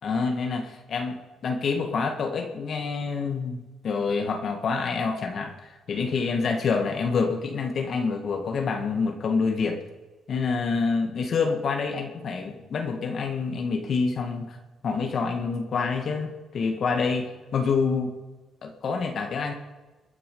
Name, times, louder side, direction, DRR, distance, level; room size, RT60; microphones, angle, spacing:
voice 1, 0.0-5.5 5.9-9.8 10.3-14.6 14.8-18.1 18.6-19.5, left 4 dB, 55° left, 4 dB, 1.8 m, -27 dB
23.0 x 9.8 x 5.4 m, 1.2 s
cardioid pair, 90°, 0 cm